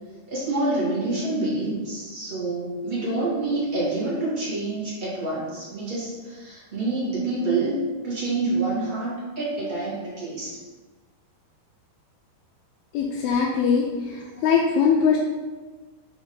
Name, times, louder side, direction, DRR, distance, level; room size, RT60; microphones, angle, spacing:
voice 1, 0.3-7.7 8.0-10.6, right 2 dB, 85° right, -9 dB, 0.4 m, -27 dB
voice 2, 12.9-13.8 14.4-15.2, left 6 dB, 80° left, -2 dB, 2.4 m, -20 dB
6.2 x 3.6 x 5.4 m, 1.3 s
omnidirectional pair, 4.5 m